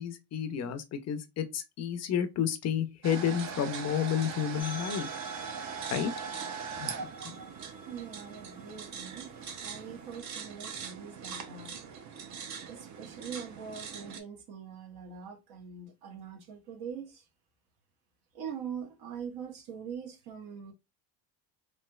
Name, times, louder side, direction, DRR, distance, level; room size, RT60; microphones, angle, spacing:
voice 1, 0.0-5.1 5.9-6.1 6.8-7.4, left 8 dB, 40° left, 0.5 m, -31 dB
sound 1, 3.0-14.2, right 6 dB, 45° right, 0.6 m, -41 dB
sound 2, 4.6-10.2, right 1 dB, 5° right, 0.7 m, -49 dB
voice 2, 7.9-9.3 9.6-11.7 12.7-17.2 18.3-20.7, right 7 dB, 65° right, 1.0 m, -43 dB
3.1 x 2.9 x 2.2 m
supercardioid pair, 105°, 42 cm